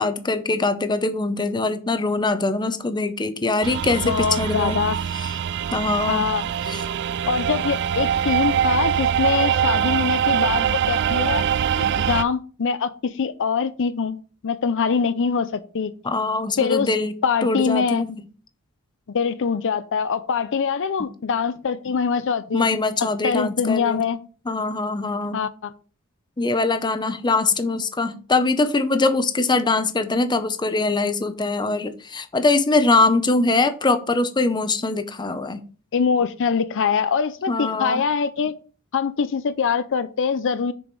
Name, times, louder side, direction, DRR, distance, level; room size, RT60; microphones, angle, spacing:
voice 1, 0.0-4.8 5.1-5.4 5.7-6.3 6.7-6.8 16.0-18.2 22.5-24.0 24.5-25.4 26.4-35.6 37.5-38.0, left 3 dB, 20° left, 10 dB, 0.7 m, -22 dB
sound 1, 3.6-12.2, right 8 dB, 50° right, 0.3 m, -23 dB
voice 2, 4.0-5.0 6.1-6.4 7.3-11.4 11.8-15.9 16.6-16.9 17.2-18.0 19.1-22.6 23.2-24.2 25.3-25.7 35.9-38.5 38.9-40.7, left 6 dB, 60° left, 13 dB, 0.5 m, -23 dB
sound 2, 6.6-9.2, right 4 dB, 85° right, 2.4 m, -43 dB
6.9 x 4.9 x 5.3 m, 0.39 s
head